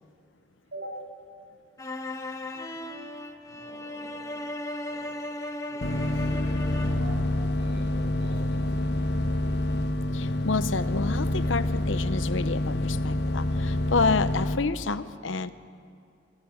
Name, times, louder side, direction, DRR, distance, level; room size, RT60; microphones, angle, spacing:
voice 1, 0.7-1.1 3.5-4.5 4.8-5.3 5.6-7.3 7.6-9.5, right 1 dB, 65° right, -1 dB, 7.1 m, -45 dB
sound 1, 1.8-7.1, left 1 dB, 15° left, 1.0 m, -36 dB
sound 2, 5.8-14.6, left 1 dB, 60° left, 1.0 m, -27 dB
voice 2, 10.1-15.5, left 4 dB, 85° left, 13 dB, 0.8 m, -29 dB
26.5 x 12.5 x 9.6 m, 2.3 s
head